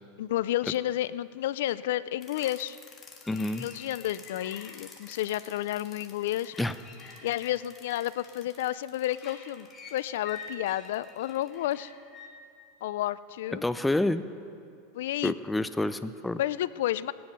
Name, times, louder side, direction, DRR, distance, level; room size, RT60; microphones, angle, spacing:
voice 1, 0.2-2.8 3.4-6.5 7.2-11.9 12.8-13.6 14.9-15.3 16.4-17.1, left 13 dB, 75° left, 17 dB, 0.4 m, -31 dB
sound 1, 2.2-12.3, left 4 dB, 25° left, 1.7 m, -48 dB
voice 2, 3.3-3.7 6.6-6.7 13.5-14.2 15.2-16.4, left 2 dB, 5° left, 11 dB, 0.4 m, -28 dB
18.5 x 10.5 x 5.3 m, 2.4 s
supercardioid pair, 150°, 0 cm